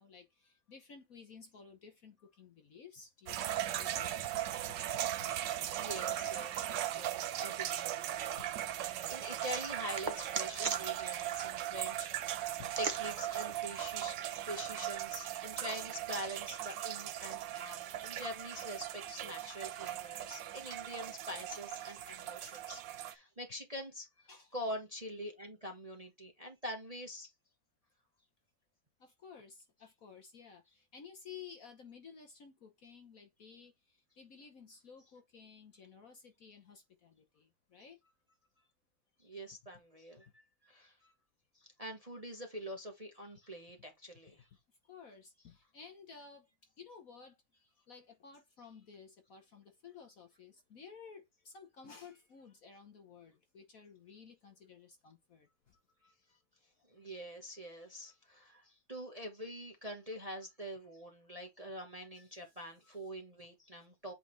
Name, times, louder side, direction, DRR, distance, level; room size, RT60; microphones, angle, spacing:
voice 1, 0.0-5.3 6.3-6.5 8.4-8.5 10.7-10.8 12.3-12.7 22.5-22.7 24.3-24.5 29.0-38.0 44.9-46.5 46.8-47.4 47.9-55.5 63.4-63.5, left 6 dB, 50° left, 1.2 m, -55 dB
sound 1, 3.3-23.1, right 12 dB, 70° right, 1.3 m, -38 dB
voice 2, 5.8-6.5 7.0-8.4 9.1-12.5 12.8-24.1 24.5-27.3 39.2-41.1 41.5-44.5 56.0-56.1 56.9-64.1, equal, 25° right, 1.1 m, -45 dB
sound 2, 8.1-14.9, right 4 dB, 55° right, 0.5 m, -44 dB
8.3 x 3.7 x 3.2 m
omnidirectional pair, 2.2 m